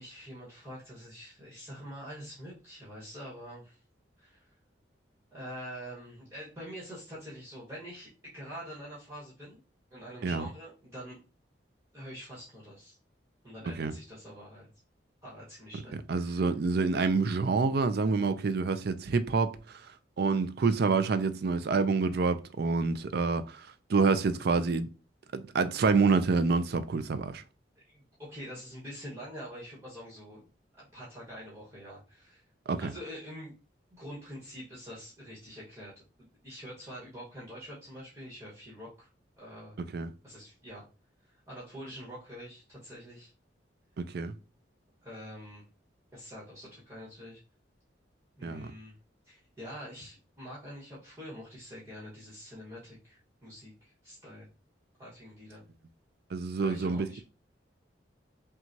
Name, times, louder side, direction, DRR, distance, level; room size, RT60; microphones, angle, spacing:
voice 1, 0.0-3.8 4.2-4.5 5.3-9.6 9.9-11.2 11.9-13.0 13.4-14.7 15.2-16.4 27.7-30.5 30.8-32.4 32.8-33.5 33.9-35.9 36.2-39.1 39.4-39.8 40.2-40.8 41.5-43.3 45.0-45.6 46.1-47.4 48.4-48.9 49.2-54.5 55.0-55.6 56.6-57.2, equal, 15° right, 1.4 m, -45 dB
voice 2, 16.1-19.8 20.2-24.9 25.3-27.4 32.7-32.9 39.9-40.1 44.0-44.3 48.4-48.7 56.3-57.2, right 4 dB, 55° right, 0.4 m, -27 dB
5.8 x 2.3 x 2.7 m
head